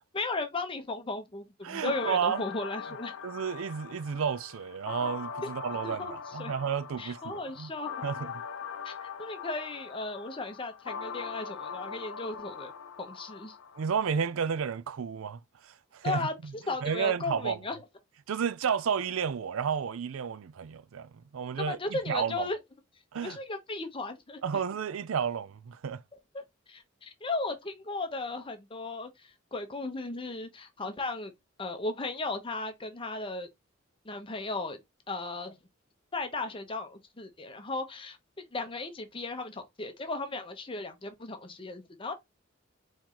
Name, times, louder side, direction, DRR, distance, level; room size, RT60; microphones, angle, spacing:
voice 1, 0.1-3.1 5.4-5.5 5.8-6.5 7.0-8.1 8.8-12.7 13.0-13.6 16.0-17.8 21.6-22.6 23.2-24.4 26.3-31.3 31.6-33.5 34.0-34.8 35.1-35.6 36.1-42.1, left 3 dB, 25° left, 0.8 m, -36 dB
voice 2, 1.6-2.4 3.2-7.7 8.0-8.3 13.8-16.3 16.8-17.6 18.3-22.5 23.1-23.4 24.4-26.0, right 7 dB, 90° right, 0.4 m, -32 dB
sound 1, 1.9-13.9, left 6 dB, 80° left, 0.6 m, -41 dB
4.3 x 3.1 x 3.8 m
head